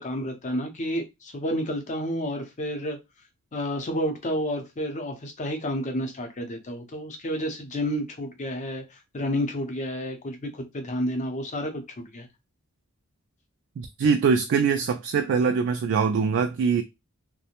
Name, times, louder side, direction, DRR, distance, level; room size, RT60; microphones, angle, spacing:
voice 1, 0.0-3.0 3.5-12.3, equal, 35° left, 0.6 m, -30 dB
voice 2, 13.8-16.8, right 5 dB, 55° right, 0.3 m, -23 dB
2.5 x 2.1 x 2.8 m
head